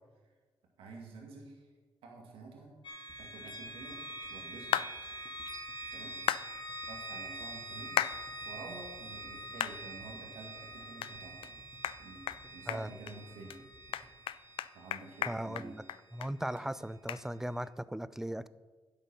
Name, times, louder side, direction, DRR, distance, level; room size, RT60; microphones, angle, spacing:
voice 1, 0.8-1.7 2.0-2.8 3.2-4.8 5.9-6.2 6.9-8.0 8.4-11.6 12.0-12.2 12.5-13.5 14.7-15.8, right 3 dB, 85° right, 0 dB, 2.1 m, -49 dB
sound 1, 2.8-16.7, right 1 dB, 60° left, 1.8 m, -46 dB
sound 2, 3.1-15.2 15.5-15.6 15.8-15.9, right 1 dB, 25° right, 3.0 m, -60 dB
sound 3, 4.7-4.9 6.3-6.5 8.0-8.2 8.7-8.8 9.6-9.8 10.2-10.3 11.0-11.1 11.4-11.5 11.8-12.0 12.3-12.4 12.7-13.1 13.5-13.6 13.9-16.3 16.6-16.7 17.1-17.2, left 11 dB, 75° left, 0.4 m, -33 dB
voice 2, 15.2-15.8 16.1-18.5, right 1 dB, 5° right, 16 dB, 0.5 m, -38 dB
11.0 x 8.0 x 5.6 m, 1.4 s
supercardioid pair, 55°, 9 cm